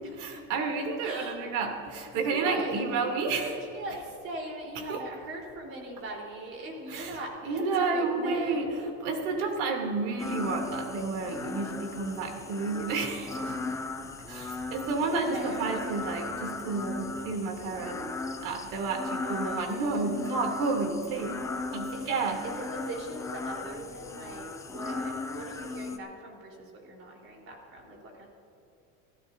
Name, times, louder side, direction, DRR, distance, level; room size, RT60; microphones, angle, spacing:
voice 1, 0.1-3.6 4.7-5.0 6.9-13.6 14.3-18.1 18.4-22.4, right 4 dB, 75° right, 2 dB, 3.0 m, -31 dB
voice 2, 1.0-1.4 2.3-3.1 3.4-8.9 14.9-16.2 19.2-19.9 21.9-28.3, right 1 dB, 35° right, -1 dB, 4.0 m, -40 dB
sound 1, 10.2-26.0, left 3 dB, 10° left, 0.5 m, -37 dB
27.0 x 15.0 x 2.7 m, 2.8 s
cardioid pair, 160°, 36 cm